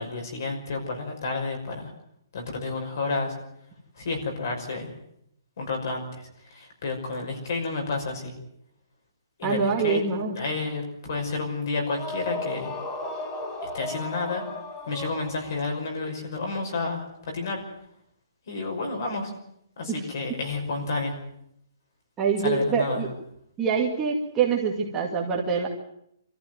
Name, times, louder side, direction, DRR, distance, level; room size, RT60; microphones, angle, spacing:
voice 1, 0.0-1.9 2.3-3.3 4.0-4.9 5.6-8.3 9.4-10.0 10.3-12.7 13.7-14.4 14.9-17.6 18.5-19.3 19.8-21.2 22.4-23.0, left 3 dB, 50° left, 3 dB, 5.8 m, -30 dB
voice 2, 9.4-10.4 19.9-20.0 22.2-23.1 23.6-25.7, right 5 dB, 10° right, -2 dB, 2.1 m, -25 dB
sound 1, 11.8-15.8, left 2 dB, 15° left, 1.4 m, -35 dB
25.5 x 14.5 x 9.4 m, 0.74 s
hypercardioid pair, 175°, 2 cm